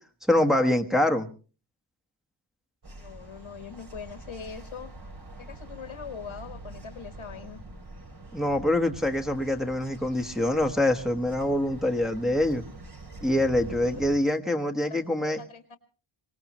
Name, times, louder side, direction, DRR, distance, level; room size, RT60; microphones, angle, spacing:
voice 1, 0.3-1.3 8.3-12.6 13.2-15.4, left 1 dB, ahead, 4 dB, 1.3 m, -25 dB
sound 1, 2.8-14.2, right 2 dB, 50° right, 3.2 m, -45 dB
voice 2, 3.0-4.9 5.4-7.6 13.8-14.0 14.8-15.8, left 6 dB, 80° left, 8 dB, 1.7 m, -42 dB
24.0 x 19.0 x 3.1 m, 0.37 s
wide cardioid pair, 120°, 49 cm